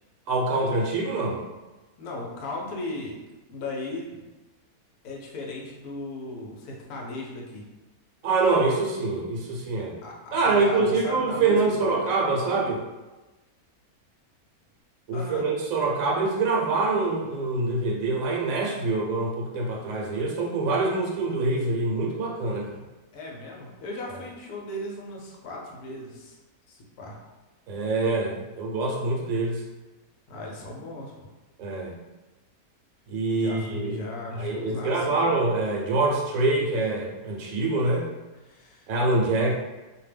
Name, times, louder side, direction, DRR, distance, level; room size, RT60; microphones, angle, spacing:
voice 1, 0.3-1.4 8.2-9.9 10.3-12.8 15.1-22.8 27.7-29.6 31.6-32.0 33.1-34.0 34.3-38.1 38.9-39.5, right 3 dB, 70° right, -2 dB, 1.0 m, -25 dB
voice 2, 2.0-3.2 3.5-4.3 5.0-7.7 10.0-12.1 12.4-12.6 15.1-15.5 23.1-26.4 26.7-27.2 30.3-31.3 33.3-35.2 38.4-38.9, left 2 dB, 80° left, -1 dB, 1.1 m, -37 dB
2.7 x 2.1 x 3.3 m, 1.1 s
omnidirectional pair, 1.6 m